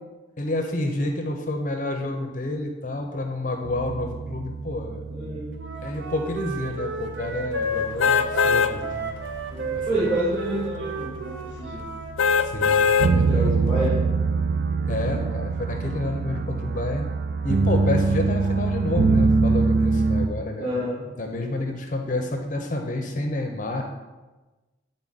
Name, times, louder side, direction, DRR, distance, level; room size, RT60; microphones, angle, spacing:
voice 1, 0.4-5.0 5.3-5.4 5.8-9.0 9.7-10.0 12.4-13.5 14.9-17.1 17.4-20.8 21.2-23.8, left 2 dB, 40° left, 4 dB, 0.6 m, -29 dB
sound 1, 3.6-20.3, right 4 dB, 50° right, 0.4 m, -26 dB
voice 2, 5.1-5.5 9.5-11.8 13.1-14.2 14.9-15.3 20.6-21.0, right 1 dB, 20° right, -11 dB, 2.1 m, -28 dB
Wind instrument woodwind instrument, 5.6-12.1, right 1 dB, 65° right, 0.8 m, -33 dB
sound 2, 8.0-8.7 9.3-9.4 12.2-13.1 13.7-13.8, left 6 dB, 85° left, 0.4 m, -20 dB
8.6 x 3.9 x 4.0 m, 1.2 s
head